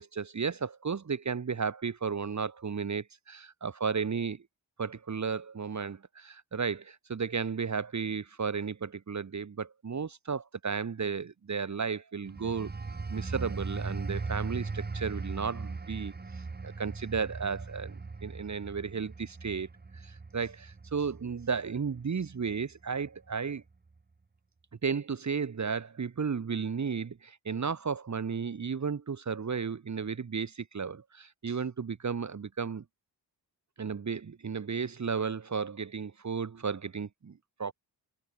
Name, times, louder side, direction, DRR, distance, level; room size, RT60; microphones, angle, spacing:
voice 1, 0.0-4.4 4.8-12.7 13.1-16.1 16.6-19.7 19.9-23.6 24.8-32.8 33.8-37.7, right 5 dB, 40° right, 1.4 m, -34 dB
sound 1, 12.2-22.6 23.0-23.3, right 4 dB, 20° right, 1.1 m, -39 dB
wide cardioid pair, 130°, 43 cm